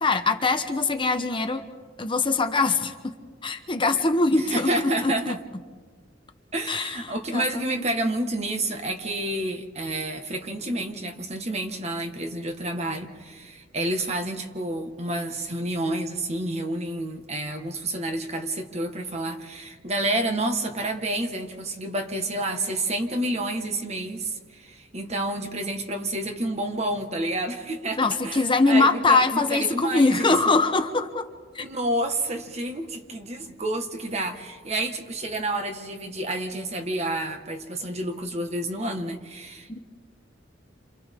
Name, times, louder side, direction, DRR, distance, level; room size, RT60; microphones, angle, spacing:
voice 1, 0.0-1.6 2.0-3.0 3.4-5.1 6.7-7.9 28.0-31.3 31.5-31.6 39.7-39.8, left 3 dB, 25° left, 6 dB, 1.1 m, -23 dB
voice 2, 4.3-5.4 6.5-30.6 31.6-39.8, right 1 dB, 35° right, 5 dB, 1.7 m, -29 dB
30.0 x 27.5 x 3.8 m, 1.5 s
head